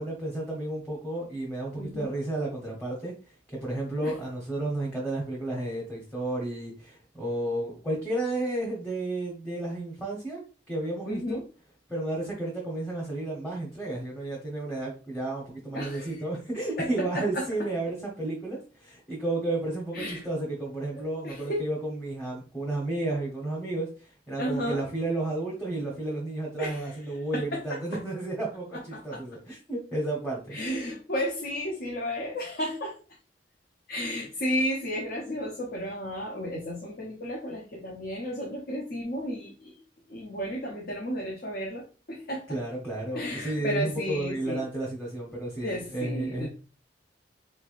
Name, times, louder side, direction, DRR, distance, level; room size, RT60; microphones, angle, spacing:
voice 1, 0.0-10.4 10.7-11.4 11.9-30.6 42.5-46.5, right 2 dB, 10° left, -5 dB, 0.9 m, -32 dB
voice 2, 1.8-2.1 4.0-4.1 11.1-11.4 15.7-16.2 16.8-16.9 17.1-17.4 19.9-20.2 20.9-21.6 24.4-24.8 26.6-27.0 27.3-27.8 28.9-29.2 30.5-33.0 33.9-39.8 40.1-42.6 43.1-44.6 45.6-46.5, equal, 55° left, -1 dB, 0.7 m, -33 dB
4.0 x 3.3 x 2.5 m, 0.35 s
head